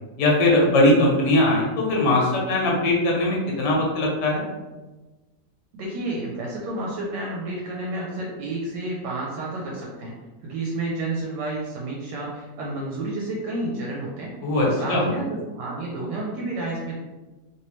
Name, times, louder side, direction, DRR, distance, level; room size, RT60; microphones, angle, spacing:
voice 1, 0.2-4.4 14.4-15.1, left 1 dB, 70° left, -2 dB, 1.5 m, -20 dB
voice 2, 5.7-10.1 10.4-14.3 14.6-16.9, right 2 dB, 75° right, -3 dB, 1.2 m, -30 dB
3.0 x 3.0 x 3.0 m, 1.2 s
omnidirectional pair, 2.0 m